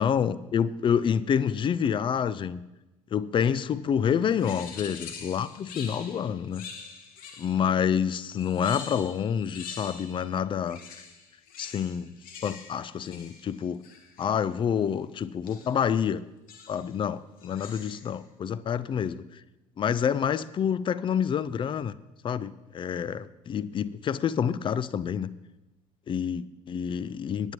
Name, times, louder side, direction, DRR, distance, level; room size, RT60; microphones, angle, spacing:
voice 1, 0.0-2.6 3.1-6.6 7.4-10.8 11.6-12.1 12.4-13.8 14.2-16.2 16.7-19.4 19.8-21.9 22.2-25.3 26.1-27.5, left 8 dB, 30° left, 18 dB, 0.5 m, -28 dB
sound 1, 4.4-7.8 8.3-10.3 10.6-14.4 15.5-15.8 16.5-16.9 17.4-18.2, left 6 dB, 50° left, 1.3 m, -45 dB
19.5 x 8.8 x 3.0 m, 1.0 s
figure-of-eight pair, 60°, 18 cm